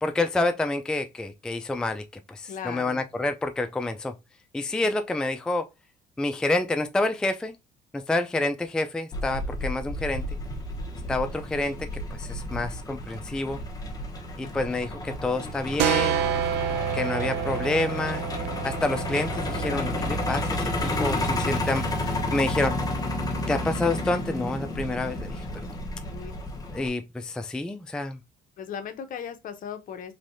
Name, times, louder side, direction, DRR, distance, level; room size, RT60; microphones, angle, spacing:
voice 1, 0.0-4.1 4.5-5.7 6.2-7.6 7.9-10.2 11.1-11.9 12.2-13.6 14.4-16.2 16.9-18.2 18.6-22.8 23.5-25.4 26.7-28.2, left 2 dB, 5° left, 0.3 m, -28 dB
voice 2, 2.5-3.0 4.8-5.0 26.1-26.3 28.6-30.1, left 8 dB, 55° left, 0.7 m, -37 dB
Truck, 9.1-26.9, left 1 dB, 20° left, 0.9 m, -31 dB
sound 1, 15.8-21.2, right 9 dB, 85° right, 0.5 m, -29 dB
3.3 x 3.0 x 2.6 m
cardioid pair, 110°, 17 cm